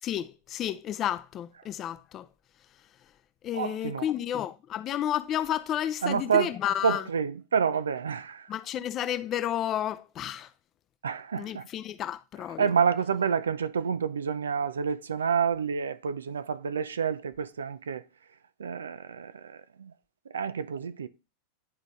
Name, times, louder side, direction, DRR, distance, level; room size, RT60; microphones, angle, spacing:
voice 1, 0.0-2.3 3.4-7.0 8.5-10.5 11.3-12.7, left 11 dB, 35° left, 0.5 m, -31 dB
voice 2, 3.5-4.1 6.0-6.5 6.8-8.5 11.0-11.6 12.6-18.0 18.6-19.9 20.3-21.1, right 6 dB, 85° right, 0.5 m, -28 dB
10.5 x 3.9 x 3.1 m
hypercardioid pair, 100°, 0 cm